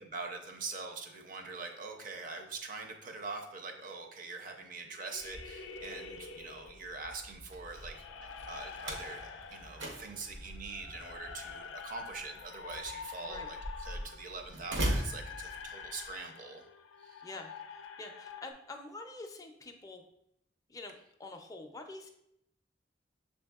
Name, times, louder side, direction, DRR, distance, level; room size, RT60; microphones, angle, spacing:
voice 1, 0.0-8.0 8.2-16.6 17.0-17.2, right 4 dB, 45° right, 4 dB, 0.6 m, -43 dB
sound 1, 4.9-7.0 7.6-18.5, left 5 dB, 85° left, 0.4 m, -47 dB
Slam, 5.2-16.1, equal, 75° right, 0.8 m, -41 dB
voice 2, 13.2-13.5 17.2-20.1 20.7-22.1, left 2 dB, 20° left, 3 dB, 0.4 m, -47 dB
6.9 x 2.6 x 2.3 m, 0.78 s
head